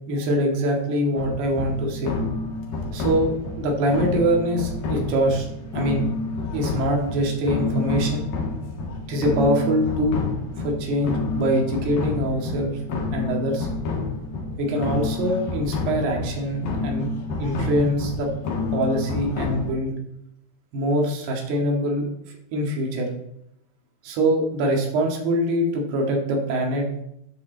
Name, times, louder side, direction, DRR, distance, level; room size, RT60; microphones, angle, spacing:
voice 1, 0.1-2.2 2.9-3.3 3.6-5.5 5.7-6.0 6.5-8.3 9.1-10.2 10.6-12.8 13.1-13.7 14.6-17.1 17.4-18.3 18.7-19.9 20.7-23.1 24.0-26.9, right 1 dB, 85° right, 1 dB, 4.1 m, -23 dB
sound 1, 1.2-19.7, left 3 dB, 70° left, 3.6 m, -29 dB
10.5 x 8.6 x 4.0 m, 0.78 s
omnidirectional pair, 4.5 m